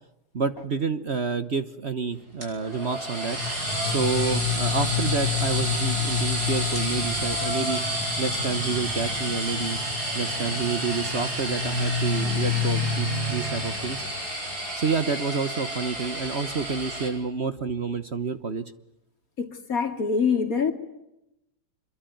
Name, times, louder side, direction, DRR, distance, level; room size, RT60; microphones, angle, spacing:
voice 1, 0.3-3.4 3.8-7.8 8.2-9.8 10.1-14.0 14.7-18.6, right 5 dB, 45° right, 1.3 m, -29 dB
sound 1, 2.4-17.1, left 2 dB, 70° right, 8.4 m, -28 dB
voice 2, 19.4-20.7, left 5 dB, 55° left, 3.1 m, -24 dB
27.0 x 22.5 x 9.3 m
omnidirectional pair, 1.8 m